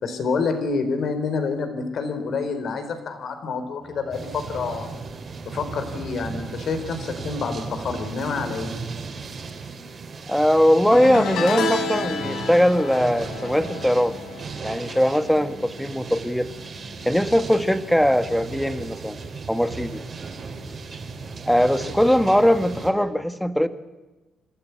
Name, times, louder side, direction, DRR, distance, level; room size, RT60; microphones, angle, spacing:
voice 1, 0.0-4.9 5.4-8.7, left 4 dB, 60° left, 9 dB, 4.2 m, -28 dB
sound 1, 3.8-9.1, right 3 dB, 25° right, 3.4 m, -44 dB
sound 2, 4.1-22.9, right 4 dB, 45° right, 4.5 m, -36 dB
voice 2, 10.3-14.1 14.6-16.5 17.0-19.2 19.5-20.0 21.5-23.7, equal, ahead, 10 dB, 1.7 m, -20 dB
sound 3, 10.9-16.3 16.6-17.0 18.2-18.3, left 2 dB, 80° left, 4.1 m, -30 dB
28.5 x 13.5 x 8.4 m, 1.1 s
cardioid pair, 90°, 0 cm